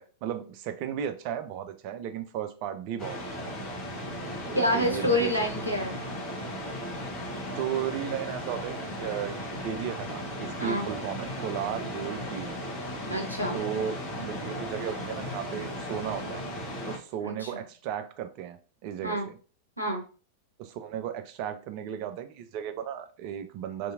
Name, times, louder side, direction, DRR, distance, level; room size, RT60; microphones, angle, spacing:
voice 1, 0.0-3.6 4.5-5.3 7.5-12.6 13.5-16.5 16.8-19.4 20.6-23.9, right 9 dB, 45° right, 0.4 m, -35 dB
sound 1, 3.0-17.0, equal, 35° left, 0.9 m, -36 dB
voice 2, 4.5-6.0 10.6-10.9 13.1-13.5 17.2-17.5 19.0-19.3 19.8-20.0, left 1 dB, 90° right, 0.6 m, -27 dB
2.8 x 2.6 x 2.4 m
figure-of-eight pair, 90°, 0 cm